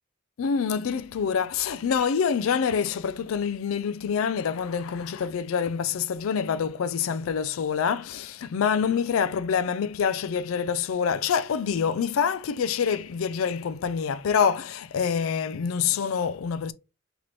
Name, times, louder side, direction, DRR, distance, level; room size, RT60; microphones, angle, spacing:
voice 1, 0.4-16.7, left 6 dB, 85° left, 0.4 m, -26 dB
4.0 x 3.0 x 3.1 m
head